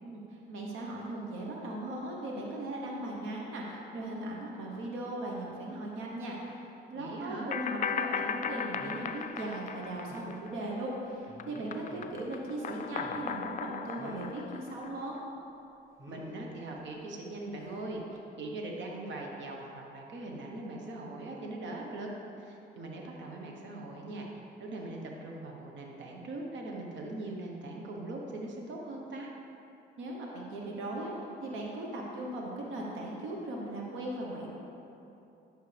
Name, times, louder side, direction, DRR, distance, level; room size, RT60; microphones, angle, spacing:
voice 1, 0.0-15.2 30.0-31.1 31.4-34.5, right 1 dB, 85° right, -2 dB, 1.1 m, -38 dB
voice 2, 6.9-7.5 16.1-22.1 22.4-24.3 24.6-29.3, right 2 dB, 65° right, 0 dB, 1.1 m, -41 dB
sound 1, 7.5-10.9 11.2-15.2, left 7 dB, 40° left, 0.4 m, -37 dB
sound 2, 7.8-8.0 8.8-9.2 9.7-9.8 10.1-10.4 11.3-12.2 12.6-13.4 14.0-14.4 16.0-16.4 17.6-17.8 18.1-18.2, equal, 15° right, 1.3 m, -48 dB
10.5 x 6.4 x 3.4 m, 2.8 s
cardioid pair, 90°, 20 cm